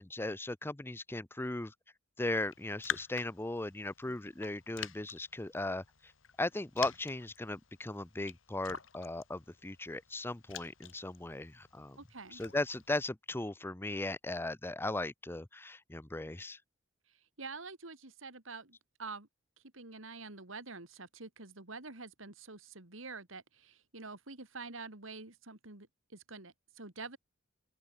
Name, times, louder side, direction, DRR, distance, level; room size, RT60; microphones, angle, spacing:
voice 1, 0.0-1.7 2.2-6.1 6.4-12.0 12.3-16.6, left 2 dB, 10° left, 0.6 m, -37 dB
Raindrop, 2.4-13.1, left 8 dB, 75° left, 3.4 m, -47 dB
voice 2, 12.0-12.4 17.4-19.3 19.7-27.2, right 3 dB, 85° right, 3.5 m, -47 dB
open air
head